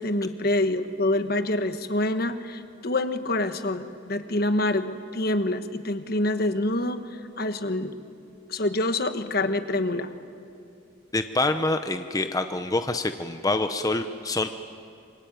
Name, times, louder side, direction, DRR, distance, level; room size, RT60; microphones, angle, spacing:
voice 1, 0.0-7.9 8.5-10.1, left 1 dB, 50° left, 10 dB, 1.3 m, -26 dB
voice 2, 11.1-14.5, left 2 dB, 20° left, 8 dB, 0.7 m, -26 dB
26.5 x 24.0 x 9.2 m, 2.5 s
head